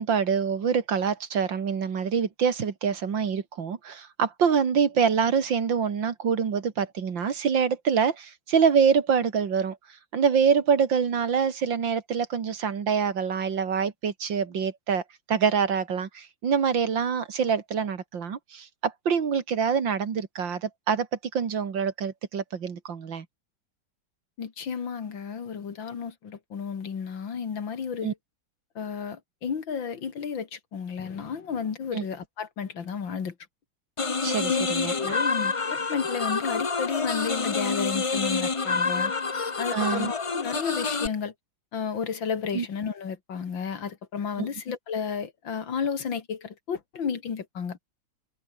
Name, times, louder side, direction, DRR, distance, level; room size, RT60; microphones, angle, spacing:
voice 1, 0.0-9.8 10.1-15.0 15.3-21.1 21.3-23.3 28.0-28.1 31.9-32.0 34.2-35.2 39.7-40.1 42.5-42.7 44.4-44.5, right 6 dB, 70° right, 2.7 m, -25 dB
voice 2, 24.4-28.1 28.8-33.3 34.4-34.6 34.9-39.1 39.6-41.3 41.7-47.8, left 6 dB, 70° left, 2.8 m, -32 dB
sound 1, 34.0-41.1, left 4 dB, 30° left, 0.5 m, -28 dB
omnidirectional pair, 2.1 m